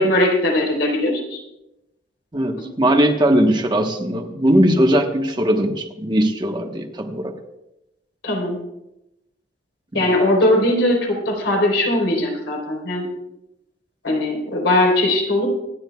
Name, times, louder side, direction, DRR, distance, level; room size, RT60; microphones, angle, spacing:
voice 1, 0.0-1.4 2.6-2.7 8.2-8.6 9.9-13.1 14.0-15.5, left 1 dB, 75° left, -1 dB, 3.9 m, -19 dB
voice 2, 2.3-7.3 9.9-10.0, equal, 25° right, 3 dB, 1.1 m, -19 dB
25.5 x 10.0 x 2.3 m, 0.89 s
head